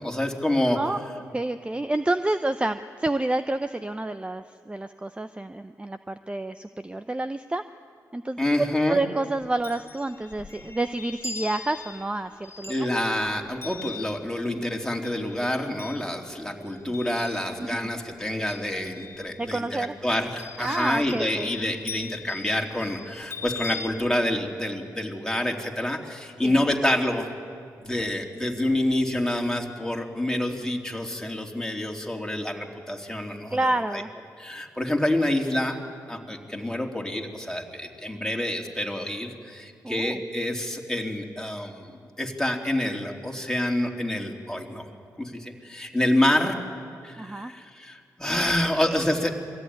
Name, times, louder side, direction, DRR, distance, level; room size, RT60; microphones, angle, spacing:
voice 1, 0.0-0.8 8.4-9.0 12.7-27.3 27.8-34.0 34.4-35.8 36.1-44.8 45.2-46.6 47.0-49.3, left 1 dB, 10° left, 1 dB, 3.0 m, -27 dB
voice 2, 0.8-7.6 8.1-12.7 17.6-17.9 19.4-19.9 20.6-21.5 26.4-26.7 33.5-34.1 39.8-40.2 47.2-47.5, right 2 dB, 15° right, 10 dB, 0.7 m, -29 dB
Chime, 9.4-17.9 18.2-19.6 20.4-23.9, left 4 dB, 35° left, 1.8 m, -41 dB
22.0 x 14.5 x 9.6 m, 2.3 s
supercardioid pair, 50°, 7 cm